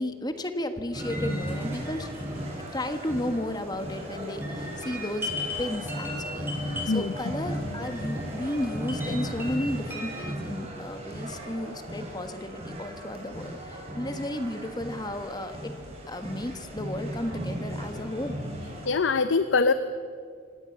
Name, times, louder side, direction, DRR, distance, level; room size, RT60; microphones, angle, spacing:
voice 1, 0.0-2.1 2.7-15.7 16.1-18.4, left 1 dB, 20° left, 8 dB, 1.4 m, -33 dB
sound 1, 0.9-10.3, left 1 dB, 10° right, 5.5 m, -39 dB
sound 2, 0.9-18.9, equal, 35° right, 5.5 m, -36 dB
voice 2, 18.8-19.7, left 4 dB, 80° left, 11 dB, 0.7 m, -23 dB
25.5 x 18.0 x 7.2 m, 2.1 s
head